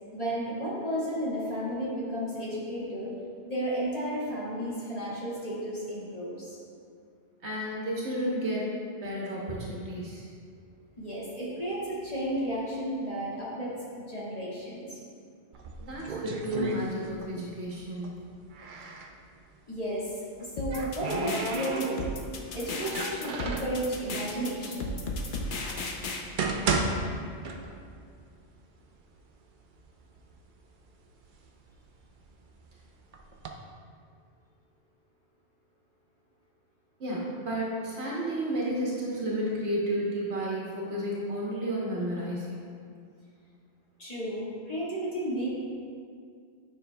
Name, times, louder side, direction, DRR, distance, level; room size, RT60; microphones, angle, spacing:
voice 1, 0.1-3.1 3.4-6.6 11.0-13.7 14.1-15.0 19.7-20.1 20.4-22.1 22.5-25.0 44.0-45.5, right 1 dB, 35° left, -8 dB, 1.8 m, -33 dB
voice 2, 7.4-8.7 9.0-10.3 15.8-18.1 37.0-42.7, equal, 75° right, -5 dB, 1.3 m, -32 dB
sound 1, 15.5-17.4 17.7-19.1 20.2-22.3 22.8-23.8 24.6-24.7 25.3-25.4 26.0-28.0 28.4-28.5 29.2-29.3 29.6-30.3 30.8-32.5 33.1-33.5, right 4 dB, 55° right, 0.6 m, -33 dB
sound 2, 20.6-26.2, left 2 dB, 55° left, 0.8 m, -35 dB
9.2 x 5.5 x 2.2 m, 2.2 s
omnidirectional pair, 1.2 m